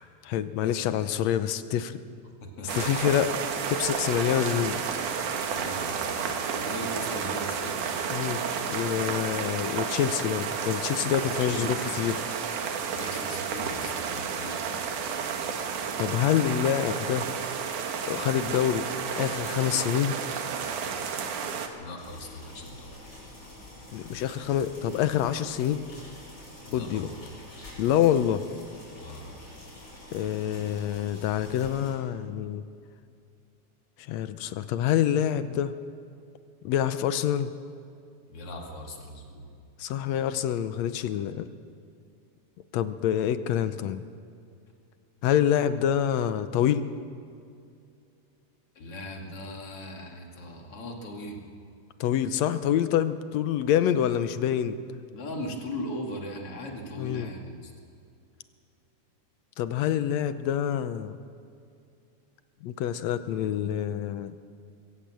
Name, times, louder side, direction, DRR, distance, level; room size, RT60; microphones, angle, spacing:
voice 1, 0.0-2.0 2.8-4.8 8.1-12.2 16.0-17.3 18.1-18.9 19.2-20.2 23.9-25.8 26.7-27.1 27.8-28.4 30.1-32.6 34.1-35.7 36.7-37.5 39.8-41.5 42.7-44.0 45.2-46.9 52.0-54.8 57.0-57.3 59.6-61.2 62.6-64.4, left 10 dB, 70° left, 12 dB, 1.8 m, -26 dB
voice 2, 2.4-2.9 5.5-7.8 11.3-11.9 12.9-14.7 21.8-23.0 26.7-27.2 29.0-29.3 38.3-39.6 48.7-51.5 55.1-57.7, left 1 dB, 50° left, 2 dB, 3.0 m, -39 dB
sound 1, 2.7-21.7, right 6 dB, 80° right, 2.9 m, -31 dB
sound 2, 22.0-31.9, left 1 dB, 35° left, 6.8 m, -47 dB
22.0 x 17.0 x 7.6 m, 2.5 s
omnidirectional pair, 3.5 m